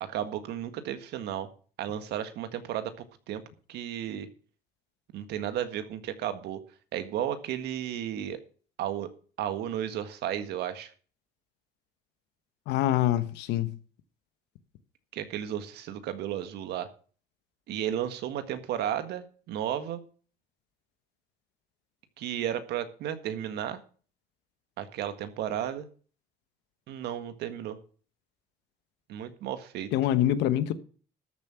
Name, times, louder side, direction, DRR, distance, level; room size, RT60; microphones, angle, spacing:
voice 1, 0.0-1.5 1.8-3.4 3.7-4.3 5.1-6.6 6.9-8.4 8.8-9.1 9.4-10.9 15.1-16.9 17.7-20.0 22.2-23.8 24.8-25.9 26.9-27.8 29.1-29.9, right 10 dB, 75° right, 1.7 m, -33 dB
voice 2, 12.7-13.8 29.9-30.7, left 12 dB, 90° left, 1.2 m, -25 dB
13.0 x 7.4 x 5.8 m
cardioid pair, 110°, 17 cm